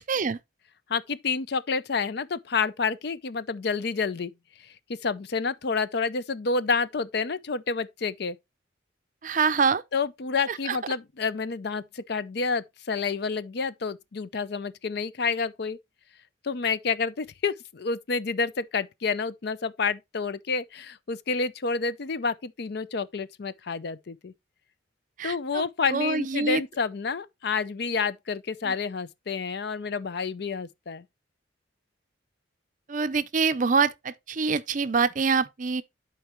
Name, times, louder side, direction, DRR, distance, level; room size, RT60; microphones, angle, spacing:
voice 1, 0.1-0.4 9.2-9.8 10.5-10.8 25.2-25.6 25.9-26.6 28.6-28.7 32.9-35.8, right 5 dB, 40° right, 0.5 m, -25 dB
voice 2, 0.9-4.3 4.9-8.4 9.9-15.8 16.4-24.3 25.2-31.0, left 4 dB, 55° left, 0.5 m, -29 dB
11.5 x 4.5 x 3.0 m
head